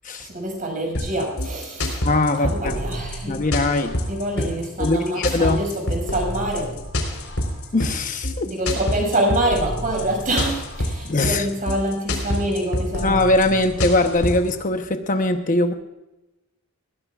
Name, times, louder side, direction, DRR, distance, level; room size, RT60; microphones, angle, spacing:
voice 1, 0.2-2.0 2.4-3.4 4.1-6.8 8.4-13.2, right 1 dB, 40° right, 1 dB, 6.2 m, -26 dB
sound 1, 0.9-14.5, left 1 dB, 85° left, 3.9 m, -27 dB
voice 2, 2.0-2.8 3.3-4.0 4.8-5.6 7.7-8.5 11.0-11.5 13.0-15.7, left 2 dB, 40° left, 6 dB, 0.9 m, -21 dB
21.0 x 16.5 x 2.4 m, 1.0 s
head